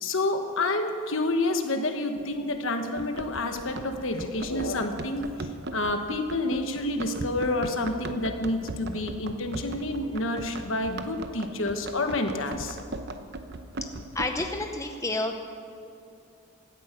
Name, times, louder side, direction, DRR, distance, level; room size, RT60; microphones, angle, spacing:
voice 1, 0.0-12.8, left 2 dB, 60° left, 6 dB, 1.4 m, -29 dB
Run, 3.0-14.7, right 2 dB, 50° right, 0.8 m, -38 dB
voice 2, 14.1-15.4, left 2 dB, 15° left, 4 dB, 0.7 m, -30 dB
17.5 x 12.5 x 6.1 m, 2.6 s
head